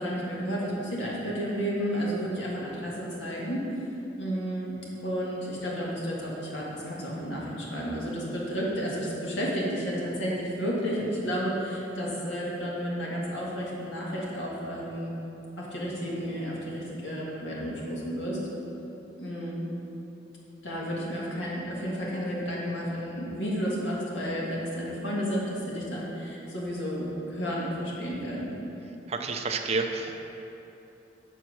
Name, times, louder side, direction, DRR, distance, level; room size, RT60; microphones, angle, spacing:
voice 1, 0.0-3.6 4.2-4.7 5.0-15.1 15.6-18.4 19.2-19.6 20.6-28.5, equal, 85° left, -4 dB, 1.8 m, -32 dB
voice 2, 29.1-30.3, right 4 dB, 35° right, 4 dB, 0.5 m, -30 dB
7.2 x 4.6 x 6.2 m, 3.0 s
head